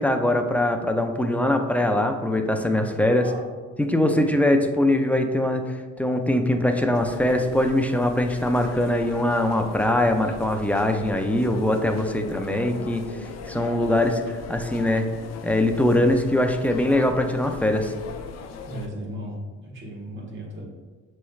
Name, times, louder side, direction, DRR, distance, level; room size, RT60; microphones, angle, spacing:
voice 1, 0.0-3.3 3.8-15.1 15.4-17.9, left 1 dB, 5° left, 5 dB, 0.4 m, -22 dB
voice 2, 2.7-3.4 3.9-4.5 12.1-12.7 18.6-20.6, equal, 40° right, -3 dB, 1.5 m, -37 dB
sound 1, 6.9-18.9, left 5 dB, 60° left, 0.5 m, -39 dB
6.7 x 3.2 x 2.3 m, 1.4 s
cardioid pair, 90°, 30 cm